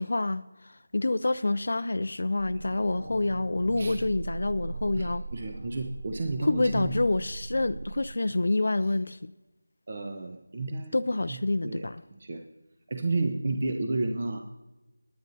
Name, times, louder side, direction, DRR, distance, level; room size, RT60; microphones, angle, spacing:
voice 1, 0.0-5.3 6.4-9.3 10.9-12.0, left 2 dB, 60° left, 0.4 m, -27 dB
sound 1, 2.4-8.2, right 3 dB, 80° right, 2.7 m, -39 dB
voice 2, 5.0-7.0 9.9-11.0 11.3-11.4 11.6-12.4 12.9-14.4, right 2 dB, 40° right, 0.9 m, -31 dB
22.5 x 9.5 x 2.7 m
figure-of-eight pair, 165°, 0 cm